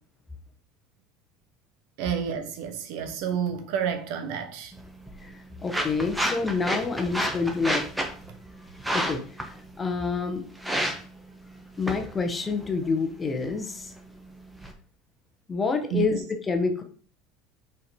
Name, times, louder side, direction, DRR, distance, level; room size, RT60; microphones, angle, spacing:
voice 1, 2.0-4.7 15.9-16.2, right 8 dB, 70° right, 1.3 m, -30 dB
sound 1, 4.7-14.7, right 1 dB, 5° right, 1.2 m, -33 dB
voice 2, 5.6-7.8 8.9-10.4 11.8-13.9 15.5-16.8, left 4 dB, 20° left, 1.3 m, -28 dB
6.0 x 4.8 x 5.3 m
cardioid pair, 140°, 0 cm